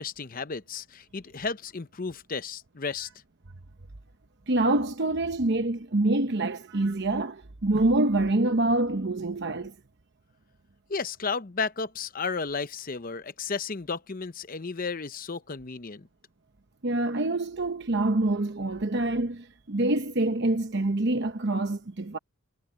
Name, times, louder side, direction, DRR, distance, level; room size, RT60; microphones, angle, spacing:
voice 1, 0.0-3.1 10.9-16.1, left 4 dB, 40° left, 0.8 m, -33 dB
voice 2, 4.5-9.7 16.8-22.2, right 2 dB, 55° right, 0.9 m, -26 dB
head